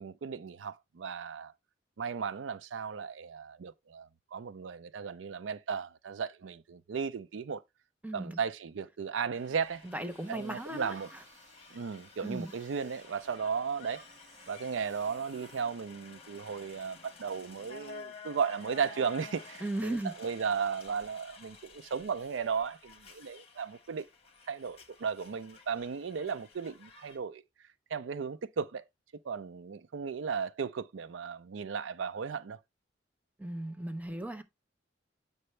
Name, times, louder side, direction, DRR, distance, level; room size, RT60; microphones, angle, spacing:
voice 1, 0.0-1.5 2.0-7.6 8.1-9.8 10.3-11.1 11.7-14.0 14.5-24.1 24.5-27.4 27.9-28.8 29.2-32.6, right 6 dB, 85° right, 0.5 m, -35 dB
voice 2, 8.0-8.4 9.8-10.9 12.2-12.5 19.6-20.1 33.4-34.4, right 1 dB, 10° right, 0.6 m, -36 dB
sound 1, 9.3-27.2, left 4 dB, 30° left, 1.3 m, -52 dB
sound 2, 10.1-13.3 13.7-15.6, right 2 dB, 40° right, 3.2 m, -61 dB
7.7 x 5.5 x 3.2 m
head